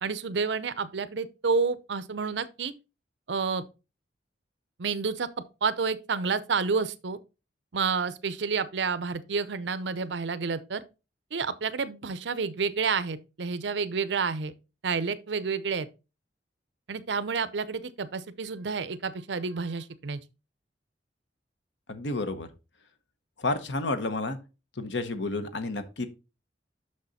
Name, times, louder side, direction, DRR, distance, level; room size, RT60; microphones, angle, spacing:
voice 1, 0.0-2.7 3.3-3.6 4.8-5.3 5.6-7.2 7.7-10.8 11.3-14.5 14.8-15.9 16.9-20.2, right 5 dB, 70° right, 0.6 m, -29 dB
voice 2, 21.9-22.5 23.4-24.4 24.8-26.1, left 2 dB, 75° left, 1.0 m, -30 dB
6.5 x 6.3 x 4.1 m
head